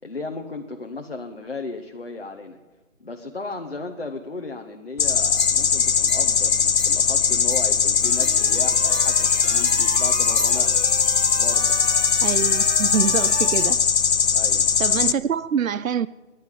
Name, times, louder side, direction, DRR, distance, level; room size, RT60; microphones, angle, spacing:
voice 1, 0.0-2.6 3.0-10.8 11.4-11.8 14.3-14.7, left 3 dB, 45° left, 1.1 m, -35 dB
sound 1, 5.0-15.1, left 6 dB, 80° left, 0.8 m, -20 dB
sound 2, 5.2-10.7, right 1 dB, 40° right, 2.6 m, -40 dB
sound 3, 8.0-13.7, right 4 dB, 55° right, 1.4 m, -34 dB
voice 2, 12.2-13.8 14.8-16.1, right 7 dB, 75° right, 0.6 m, -25 dB
11.0 x 10.5 x 9.9 m
figure-of-eight pair, 180°, 41 cm